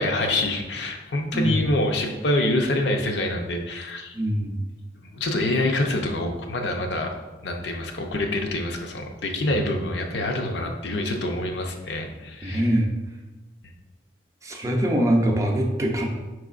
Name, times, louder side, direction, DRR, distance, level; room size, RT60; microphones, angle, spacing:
voice 1, 0.0-4.2 5.0-7.1 7.4-12.7, left 1 dB, 65° left, 2 dB, 0.6 m, -26 dB
voice 2, 4.1-4.6 12.4-12.9 14.4-16.1, right 1 dB, 15° right, 1 dB, 0.5 m, -23 dB
4.7 x 4.6 x 2.4 m, 1.2 s
head